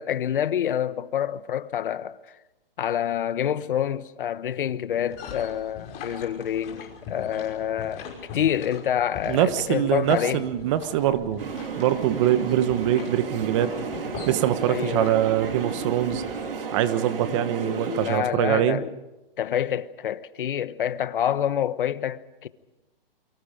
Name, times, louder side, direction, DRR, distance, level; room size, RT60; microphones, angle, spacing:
voice 1, 0.0-2.2 2.8-8.1 8.3-10.4 14.7-15.2 17.3-18.9 19.4-22.5, left 10 dB, 65° left, 1.2 m, -27 dB
sound 1, 4.9-16.5, left 6 dB, 25° left, 5.9 m, -41 dB
voice 2, 9.3-11.5 11.8-13.8 14.3-16.2 16.7-18.8, right 12 dB, 30° right, 1.3 m, -23 dB
sound 2, 11.4-18.2, right 6 dB, 70° right, 3.4 m, -33 dB
29.0 x 24.0 x 5.1 m
hypercardioid pair, 155°, 29 cm